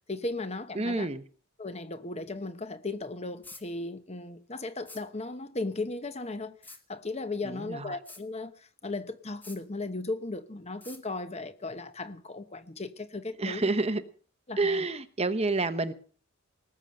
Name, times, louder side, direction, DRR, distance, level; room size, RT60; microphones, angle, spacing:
voice 1, 0.1-1.1 1.6-13.7 14.5-14.8, left 2 dB, 30° left, 1.0 m, -36 dB
voice 2, 0.7-1.2 7.4-8.0 13.4-14.0 14.6-15.9, right 3 dB, 30° right, 0.8 m, -29 dB
sound 1, 3.4-3.6 4.9-5.0 6.6-6.8 8.1-8.2 9.4-9.6 10.8-11.0, left 2 dB, 10° left, 1.4 m, -47 dB
19.0 x 7.1 x 7.7 m
head